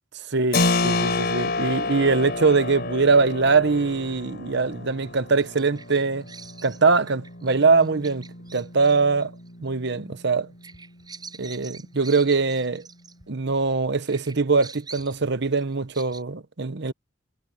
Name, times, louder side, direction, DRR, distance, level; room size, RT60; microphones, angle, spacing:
voice 1, 0.3-6.2 6.6-8.3 8.5-9.3 9.6-10.5 11.4-12.8 13.3-16.9, right 4 dB, 60° right, 1.0 m, -22 dB
Keyboard (musical), 0.5-10.9, left 3 dB, 55° left, 5.4 m, -30 dB
Bird vocalization bird call bird song, 5.3-13.7 14.1-16.2, right 5 dB, 20° right, 7.2 m, -46 dB
head